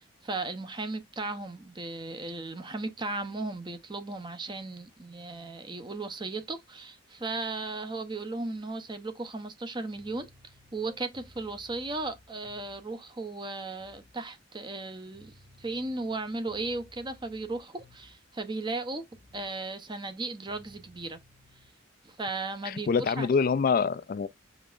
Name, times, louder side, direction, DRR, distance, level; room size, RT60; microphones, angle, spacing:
voice 1, 0.0-19.0 19.3-21.2 22.0-23.3, right 3 dB, 25° right, 0.7 m, -36 dB
sound 1, 9.9-13.0 13.8-14.2 15.1-18.3 19.1-19.5 20.5-21.7, left 1 dB, 70° right, 2.5 m, -58 dB
voice 2, 22.7-24.3, left 5 dB, 45° left, 0.3 m, -25 dB
5.2 x 4.1 x 2.4 m
head